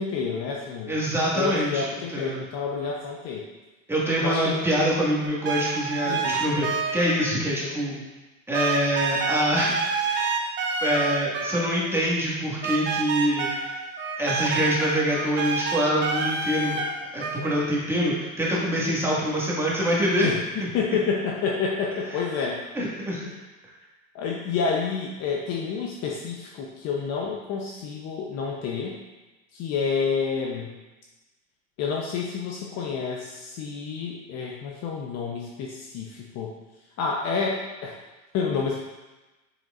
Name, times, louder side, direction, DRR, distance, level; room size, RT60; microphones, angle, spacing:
voice 1, 0.0-1.0 1.3-3.4 4.2-4.7 6.0-6.5 7.6-7.8 20.2-22.6 23.2-23.4 24.1-29.0 29.5-30.7 31.8-36.5 37.0-38.0 38.3-38.8, left 5 dB, 40° left, -1 dB, 0.9 m, -29 dB
voice 2, 0.9-2.4 3.9-8.0 8.5-10.4 10.8-13.8 14.2-16.8 17.1-20.3 20.6-20.7 22.7-23.2, equal, 5° right, -6 dB, 1.9 m, -25 dB
sound 1, 5.2-7.2 8.5-11.9 12.6-17.6, right 5 dB, 30° right, 1.0 m, -28 dB
6.7 x 6.5 x 2.6 m, 1.1 s
hypercardioid pair, 110°, 40 cm